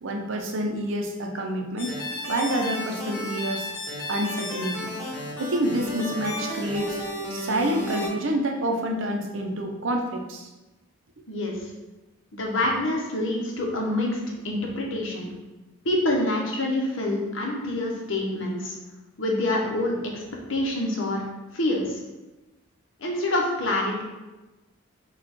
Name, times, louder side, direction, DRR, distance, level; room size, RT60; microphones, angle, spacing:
voice 1, 0.0-2.0 2.2-3.7 4.1-4.9 5.4-7.0 7.3-10.5, right 1 dB, 65° right, 2 dB, 0.6 m, -28 dB
sound 1, 1.8-8.1, left 1 dB, 10° left, 1.5 m, -33 dB
voice 2, 11.3-11.7 12.3-14.2 14.4-15.3 15.8-18.7 19.2-20.2 20.5-21.2 21.5-22.0 23.0-24.0, left 1 dB, 60° left, -1 dB, 1.0 m, -26 dB
5.1 x 2.4 x 4.4 m, 1.1 s
head